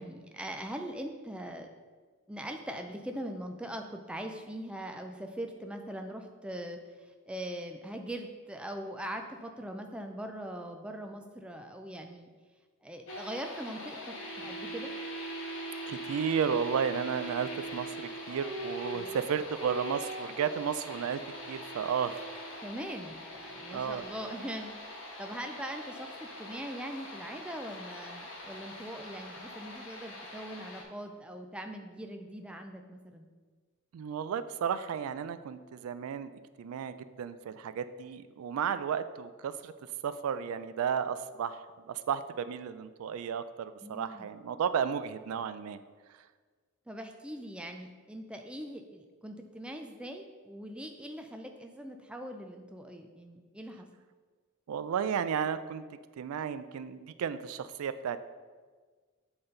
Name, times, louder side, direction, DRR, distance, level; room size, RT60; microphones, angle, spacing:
voice 1, 0.0-1.7 2.3-6.8 7.2-12.3 12.8-14.9 18.9-19.2 22.6-33.3 43.8-44.3 46.9-53.9, right 1 dB, 5° right, 4 dB, 0.4 m, -41 dB
sound 1, 13.1-30.8, equal, 65° left, 1.1 m, -42 dB
voice 2, 15.9-21.2 21.5-22.2 23.7-24.0 33.9-36.3 36.6-39.7 40.0-45.8 54.7-55.8 56.2-58.2, right 7 dB, 85° right, 13 dB, 0.3 m, -33 dB
7.7 x 4.0 x 3.8 m, 1.5 s
head